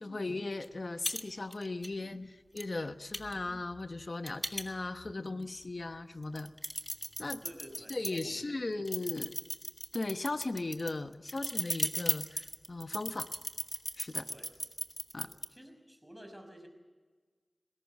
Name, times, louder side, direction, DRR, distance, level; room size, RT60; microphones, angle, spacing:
voice 1, 0.0-6.5 7.2-7.4 7.9-9.3 9.9-13.3 14.0-14.3 15.1-15.3, left 2 dB, 60° left, 10 dB, 1.0 m, -37 dB
sound 1, 0.6-0.7 1.0-1.2 1.5-1.9 2.6-2.7 3.1-5.1 5.6-5.7 6.2-8.2 8.8-15.5, left 1 dB, 15° left, 1.9 m, -37 dB
voice 2, 7.4-8.6 9.0-9.1 14.3-14.5 15.2-16.7, equal, 5° right, 5 dB, 5.5 m, -51 dB
20.5 x 18.0 x 8.5 m, 1.4 s
cardioid pair, 40°, 0 cm